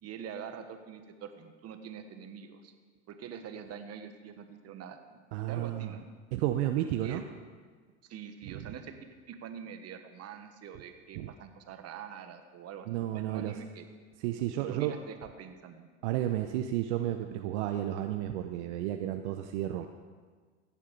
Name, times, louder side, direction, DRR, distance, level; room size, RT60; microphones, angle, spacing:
voice 1, 0.0-2.7 3.1-6.1 7.0-7.2 8.1-13.9 14.6-15.9, right 7 dB, 40° right, 7 dB, 1.5 m, -45 dB
voice 2, 5.3-6.0 6.3-7.2 11.2-11.3 12.9-13.6 14.2-14.9 16.0-19.9, right 12 dB, 65° right, 6 dB, 0.8 m, -32 dB
16.5 x 7.4 x 5.3 m, 1.5 s
hypercardioid pair, 90°, 37 cm